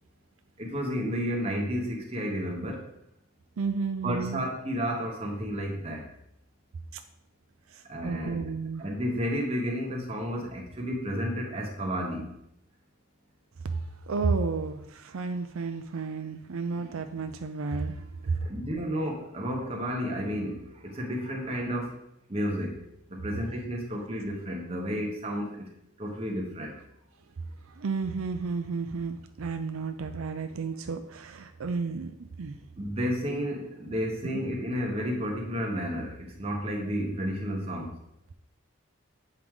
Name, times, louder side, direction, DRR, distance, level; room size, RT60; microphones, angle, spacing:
voice 1, 0.6-2.9 4.0-6.0 7.9-8.5 8.8-12.2 18.4-21.9 22.3-22.8 23.1-25.7 26.0-26.8 32.8-37.9, equal, 30° right, 0 dB, 1.2 m, -31 dB
voice 2, 3.6-4.4 7.7-8.9 13.6-13.8 14.0-18.4 27.8-32.6, right 4 dB, 75° right, 7 dB, 0.5 m, -32 dB
8.0 x 4.7 x 3.7 m, 0.78 s
head